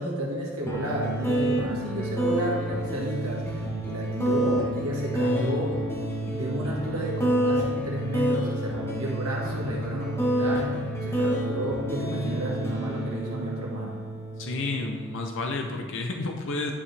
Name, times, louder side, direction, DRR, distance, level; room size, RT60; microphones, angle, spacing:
voice 1, 0.0-5.7 6.3-14.0, right 1 dB, 75° right, -3 dB, 1.8 m, -32 dB
sound 1, 0.7-15.7, right 1 dB, 10° left, 1.2 m, -29 dB
voice 2, 5.2-5.8 14.4-16.7, left 2 dB, 60° left, 3 dB, 0.7 m, -31 dB
10.0 x 5.0 x 3.4 m, 1.5 s
head